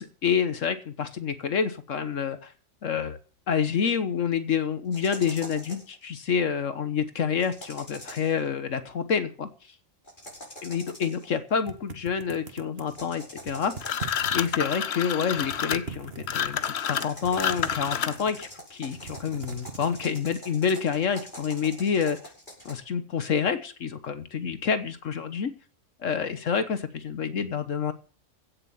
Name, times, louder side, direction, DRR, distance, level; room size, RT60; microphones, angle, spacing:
voice 1, 0.0-2.5 2.8-3.2 3.5-9.5 10.6-14.0 14.3-22.2 22.6-25.5 26.0-27.9, left 7 dB, 75° left, 11 dB, 1.5 m, -28 dB
sound 1, 4.9-5.9 7.4-8.4 10.0-11.3 12.9-14.5 16.5-22.7, equal, 40° left, 5.8 m, -44 dB
sound 2, 11.7-13.0 13.4-14.8 15.2-16.7 17.2-18.5 18.9-20.7, right 5 dB, 50° right, 1.8 m, -41 dB
sound 3, 13.8-18.4, left 8 dB, 60° left, 1.0 m, -29 dB
16.5 x 7.1 x 7.2 m, 0.41 s
omnidirectional pair, 1.3 m